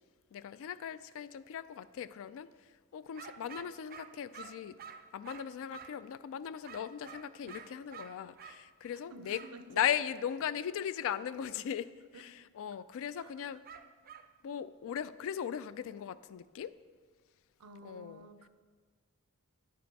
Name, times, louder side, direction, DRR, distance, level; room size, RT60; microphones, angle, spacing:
voice 1, 0.3-4.8 5.1-9.4 9.7-13.6 14.4-16.7 17.8-18.3, left 9 dB, 65° left, 15 dB, 0.3 m, -38 dB
sound 1, 3.1-6.1 6.6-8.6 9.3-9.6 13.6-14.3, right 7 dB, 40° right, 0.4 m, -50 dB
voice 2, 8.8-9.9 12.1-12.2 13.2-13.3 17.6-18.5, right 2 dB, 90° right, 9 dB, 0.6 m, -52 dB
10.0 x 5.1 x 4.6 m, 1.5 s
head